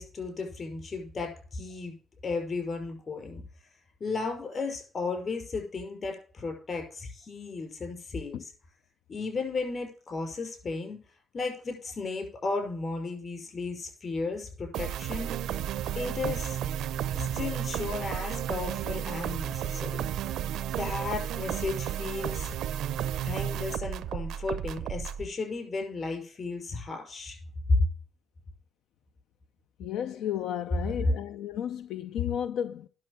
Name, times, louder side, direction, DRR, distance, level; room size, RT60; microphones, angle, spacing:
voice 1, 0.0-2.0 2.2-3.4 4.0-8.5 9.1-11.0 11.3-15.3 15.9-16.6 17.1-20.1 20.8-22.5 23.2-27.4 27.7-27.8, left 3 dB, 45° left, 5.5 m, -34 dB
sound 1, 14.7-25.2, right 10 dB, 85° right, 0.6 m, -33 dB
voice 2, 29.8-32.9, left 10 dB, 85° left, 0.5 m, -33 dB
10.5 x 6.4 x 6.6 m
cardioid pair, 90°, 0 cm